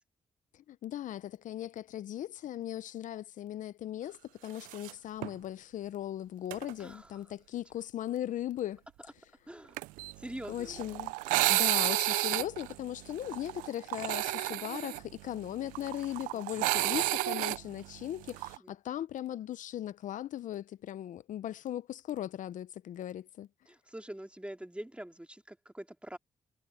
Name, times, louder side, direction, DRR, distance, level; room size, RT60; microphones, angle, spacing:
voice 1, 0.5-8.8 10.5-11.1 11.5-23.5, left 12 dB, 70° left, 0.7 m, -38 dB
sound 1, 4.6-4.9 5.2-5.3 6.5-6.7 9.8-18.6, right 21 dB, 85° right, 0.5 m, -31 dB
voice 2, 6.8-7.2 9.0-9.1 9.5-9.9 10.2-10.9 16.3-16.8 17.1-17.6 18.6-18.7 23.7-26.2, right 1 dB, 10° right, 3.0 m, -45 dB
hypercardioid pair, 45°, 14 cm